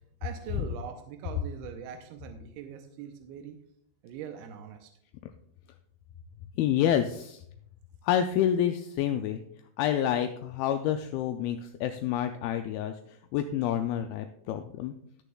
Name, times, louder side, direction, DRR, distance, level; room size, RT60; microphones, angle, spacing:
voice 1, 0.2-3.6 4.0-4.9, right 8 dB, 90° right, 5 dB, 2.7 m, -42 dB
voice 2, 6.6-7.4 8.0-9.4 9.8-14.9, left 10 dB, 80° left, 7 dB, 2.3 m, -28 dB
19.5 x 6.6 x 2.3 m, 0.69 s
omnidirectional pair, 4.5 m